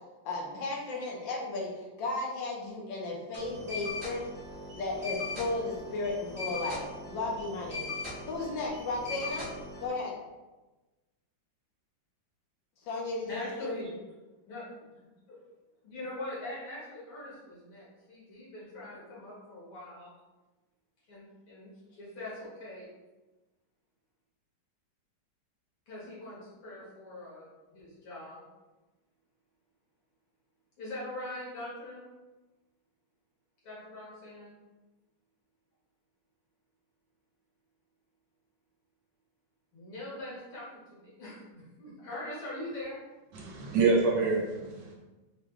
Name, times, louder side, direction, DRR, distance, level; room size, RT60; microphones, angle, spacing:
voice 1, 0.2-4.2 4.7-7.8 8.3-9.5 9.8-10.1 12.9-13.7, left 2 dB, 75° left, -2 dB, 1.5 m, -34 dB
sound 1, 3.3-9.9, left 2 dB, 25° right, 0.7 m, -40 dB
voice 2, 13.3-14.0 14.5-14.7 15.8-20.1 21.1-21.7 22.0-22.9 25.9-27.5 27.7-28.4 30.8-32.0 33.6-34.5 39.7-43.0, left 1 dB, 90° left, -8 dB, 2.6 m, -42 dB
voice 3, 43.3-44.9, right 4 dB, 70° right, -1 dB, 1.2 m, -26 dB
4.8 x 2.2 x 3.4 m, 1.1 s
omnidirectional pair, 2.1 m